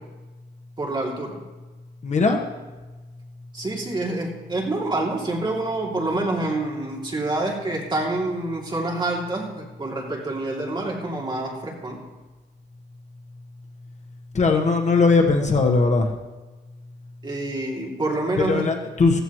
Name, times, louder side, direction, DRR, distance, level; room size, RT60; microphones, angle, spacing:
voice 1, 0.8-1.4 3.5-12.0 17.2-18.7, right 2 dB, 25° right, -2 dB, 2.7 m, -27 dB
voice 2, 2.0-2.4 14.3-16.1 18.4-19.2, left 4 dB, 40° left, 3 dB, 1.3 m, -19 dB
15.5 x 15.0 x 3.1 m, 1.2 s
wide cardioid pair, 140°, 18 cm